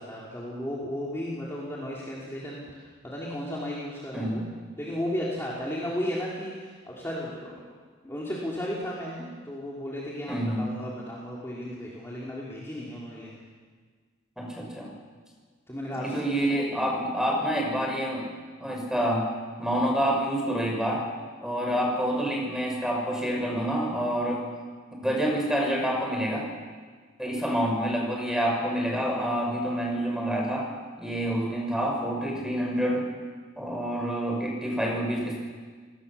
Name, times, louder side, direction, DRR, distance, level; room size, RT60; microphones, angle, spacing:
voice 1, 0.0-4.4 4.8-7.7 8.0-13.4 15.7-16.2, equal, 10° left, -5 dB, 3.3 m, -34 dB
voice 2, 4.1-4.5 10.3-10.7 14.4-14.9 15.9-18.3 18.6-19.3 19.6-21.0 21.4-24.4 24.9-26.5 27.2-30.7 31.0-33.1 33.6-35.3, equal, 5° right, 0 dB, 5.1 m, -27 dB
28.0 x 18.5 x 7.0 m, 1.5 s
head